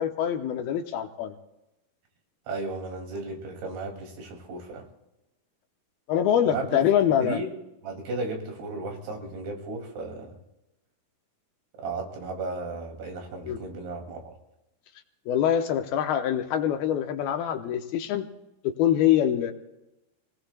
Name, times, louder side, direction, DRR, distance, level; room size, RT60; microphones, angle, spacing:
voice 1, 0.0-1.3 6.1-7.4 13.5-13.6 15.3-18.3 18.6-19.5, left 10 dB, 75° left, 6 dB, 2.6 m, -24 dB
voice 2, 2.5-4.9 6.4-6.8 7.2-7.5 7.8-10.3 11.8-14.4, right 3 dB, 80° right, 3 dB, 4.5 m, -35 dB
27.5 x 18.5 x 2.2 m, 0.93 s
omnidirectional pair, 4.6 m